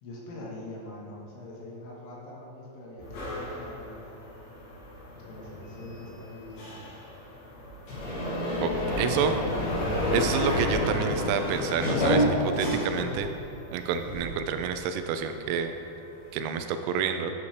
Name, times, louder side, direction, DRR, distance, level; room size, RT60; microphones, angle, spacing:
voice 1, 0.0-4.3 5.1-6.9 8.7-9.4, left 1 dB, 85° left, -4 dB, 4.0 m, -43 dB
sound 1, 3.0-13.6 13.9-15.2, left 1 dB, 55° left, 3.7 m, -30 dB
voice 2, 9.0-9.3 10.1-13.3 13.7-15.7 16.3-17.3, right 7 dB, 90° right, 8 dB, 3.1 m, -29 dB
12.5 x 6.7 x 3.2 m, 2.8 s
omnidirectional pair, 5.4 m